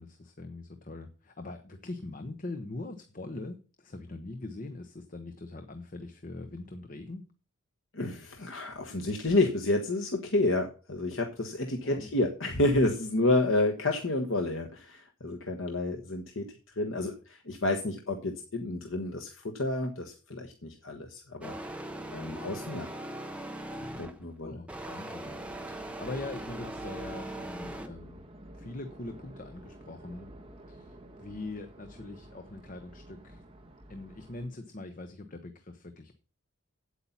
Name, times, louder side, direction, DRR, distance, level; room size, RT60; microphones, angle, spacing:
voice 1, 0.0-7.3 11.8-12.1 24.4-28.2 28.5-30.3 30.7-33.4 33.9-36.1, left 2 dB, 40° left, 7 dB, 0.9 m, -42 dB
voice 2, 7.9-21.8 22.1-22.9 24.0-24.6, left 2 dB, 65° left, 4 dB, 1.2 m, -30 dB
sound 1, 21.4-24.2 24.7-27.9, right 1 dB, 5° right, 0.9 m, -40 dB
sound 2, 25.4-34.5, right 1 dB, 25° right, 1.5 m, -50 dB
8.6 x 8.3 x 5.7 m, 0.36 s
head